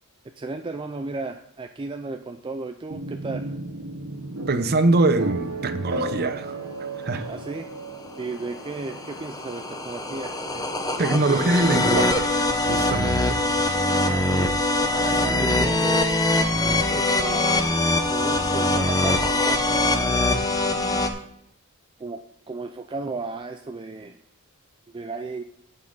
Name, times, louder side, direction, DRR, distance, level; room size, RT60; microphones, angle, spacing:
voice 1, 0.4-3.5 7.3-7.7 8.2-10.7 13.2-13.3 14.0-14.5 14.8-16.1 16.6-17.5 18.1-20.1 22.0-24.2 24.9-25.4, right 3 dB, 20° right, 0.4 m, -34 dB
sound 1, 2.9-16.7, right 2 dB, 65° right, 1.2 m, -37 dB
voice 2, 4.5-6.6 7.0-7.3 11.0-13.4 13.7-13.8, right 2 dB, 45° right, 0.7 m, -23 dB
sound 2, 8.1-21.1, left 2 dB, 15° left, 0.7 m, -23 dB
16.0 x 5.5 x 3.9 m
head